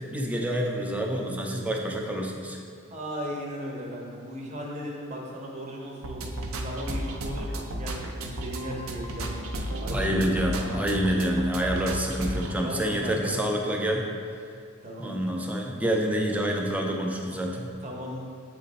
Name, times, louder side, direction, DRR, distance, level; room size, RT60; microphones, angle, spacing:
voice 1, 0.1-2.6 9.9-14.0 14.3-14.5 15.0-17.7, equal, 5° right, 0 dB, 0.4 m, -27 dB
voice 2, 2.9-9.5 9.8-10.8 12.6-13.4 14.8-15.2 17.8-18.2, equal, 35° right, -1 dB, 0.8 m, -37 dB
sound 1, 6.0-12.5, right 1 dB, 75° right, 0.5 m, -33 dB
7.8 x 3.0 x 4.0 m, 2.3 s
head